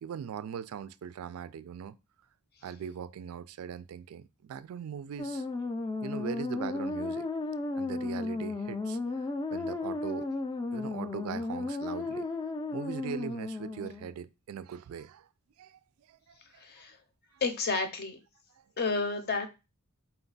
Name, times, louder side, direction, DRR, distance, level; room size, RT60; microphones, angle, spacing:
voice 1, 0.0-2.0 2.6-5.4 6.0-7.3 7.8-9.0 9.5-10.3 10.7-12.3 12.7-15.2 15.6-15.8 16.1-16.2, right 7 dB, 75° right, 0.3 m, -40 dB
sound 1, 5.2-14.1, left 3 dB, 20° left, 0.4 m, -34 dB
voice 2, 16.6-17.0 17.4-18.2 18.8-19.5, left 4 dB, 45° left, 0.7 m, -31 dB
4.3 x 2.2 x 3.9 m
head